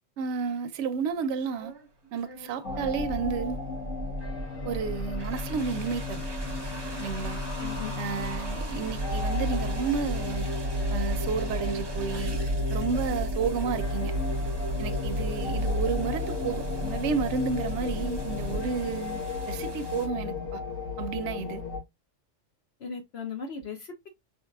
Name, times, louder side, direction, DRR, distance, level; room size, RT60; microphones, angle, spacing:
voice 1, 0.2-1.7 2.1-3.6 4.6-6.2 7.0-7.4 8.0-10.5 10.9-12.4 12.7-14.2 14.8-19.2 19.5-20.6 21.0-21.6, right 6 dB, 70° right, 0.8 m, -31 dB
sound 1, 1.1-20.1, right 3 dB, 25° right, 0.6 m, -46 dB
sound 2, 2.6-21.8, left 1 dB, 80° left, 1.7 m, -31 dB
voice 2, 7.6-8.0 22.8-24.1, left 6 dB, 60° left, 0.9 m, -37 dB
4.5 x 3.4 x 2.2 m
omnidirectional pair, 1.3 m